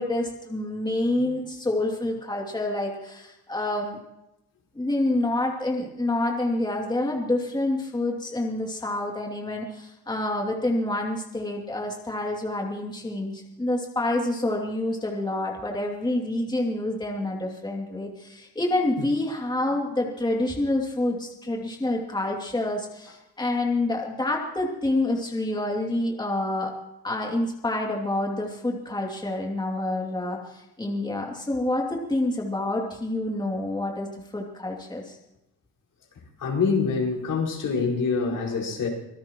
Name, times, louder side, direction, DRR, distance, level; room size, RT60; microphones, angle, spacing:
voice 1, 0.0-4.0 4.7-26.7 27.0-35.2, left 1 dB, 10° left, -1 dB, 2.7 m, -27 dB
voice 2, 36.4-38.9, left 5 dB, 60° left, -2 dB, 5.1 m, -25 dB
26.0 x 17.0 x 3.1 m, 0.89 s
cardioid pair, 95°, 36 cm